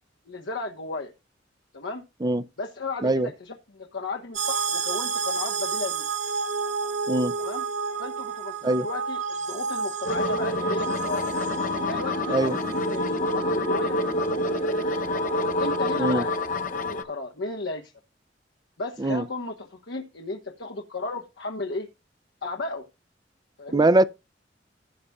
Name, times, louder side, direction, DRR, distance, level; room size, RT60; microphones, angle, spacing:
voice 1, 0.3-1.1 1.7-2.0 2.6-6.1 7.4-7.6 8.0-11.3 11.9-15.0 15.6-16.3 16.7-17.9 18.8-21.9 22.4-22.8 23.6-23.9, left 3 dB, 75° left, 1.3 m, -35 dB
sound 1, 4.3-15.8, right 5 dB, 40° right, 1.0 m, -31 dB
sound 2, 10.0-17.0, left 1 dB, 45° left, 0.7 m, -27 dB
voice 2, 23.7-24.0, right 2 dB, 20° right, 0.5 m, -22 dB
15.5 x 6.8 x 2.4 m
head